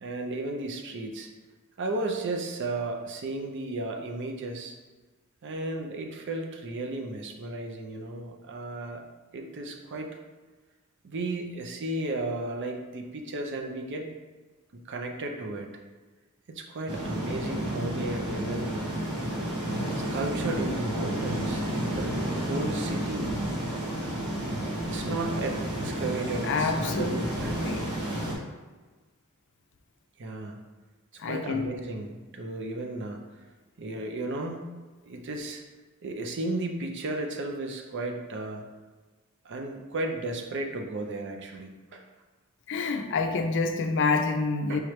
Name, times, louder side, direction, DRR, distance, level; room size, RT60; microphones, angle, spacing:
voice 1, 0.0-1.3 1.8-4.8 5.4-9.0 9.3-10.1 11.0-14.1 14.7-15.7 16.5-19.1 20.0-23.3 24.8-27.6 30.2-30.6 31.2-33.3 33.8-34.6 35.0-35.6 36.0-38.7 39.4-42.0 44.7-44.8, right 2 dB, 55° right, 2 dB, 0.5 m, -34 dB
sound 1, 16.9-28.3, right 1 dB, 85° right, 0.9 m, -31 dB
voice 2, 26.4-27.9 31.2-31.7 42.7-44.8, left 4 dB, 55° left, 5 dB, 0.4 m, -28 dB
4.8 x 3.1 x 3.1 m, 1.3 s
head